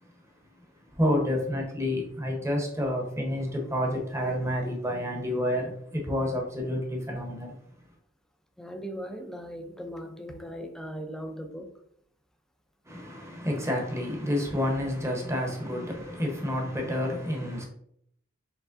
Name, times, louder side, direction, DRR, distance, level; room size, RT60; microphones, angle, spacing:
voice 1, 1.0-7.6 12.9-17.7, left 1 dB, 15° right, 0.9 m, -29 dB
voice 2, 8.6-11.7, equal, 5° left, 0.4 m, -39 dB
4.8 x 3.3 x 2.5 m
head